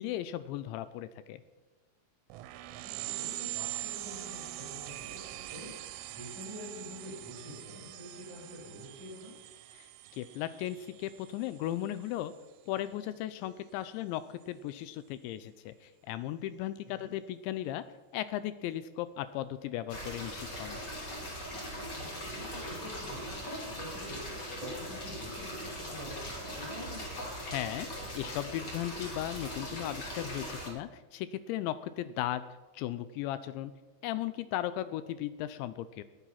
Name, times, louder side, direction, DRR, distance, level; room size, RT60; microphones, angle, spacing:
voice 1, 0.0-1.4 9.8-9.9 10.1-12.3 12.7-17.9 18.1-20.8 27.4-32.4 32.7-33.7 34.0-36.0, left 13 dB, 85° left, 14 dB, 2.8 m, -36 dB
sound 1, 2.3-12.4, right 15 dB, 85° right, 3.1 m, -43 dB
voice 2, 2.8-9.3 16.8-17.1 22.0-27.2, equal, 40° right, -3 dB, 6.3 m, -46 dB
sound 2, 19.9-30.7, equal, 35° left, 1.8 m, -40 dB
19.0 x 7.2 x 5.7 m, 1.2 s
omnidirectional pair, 5.3 m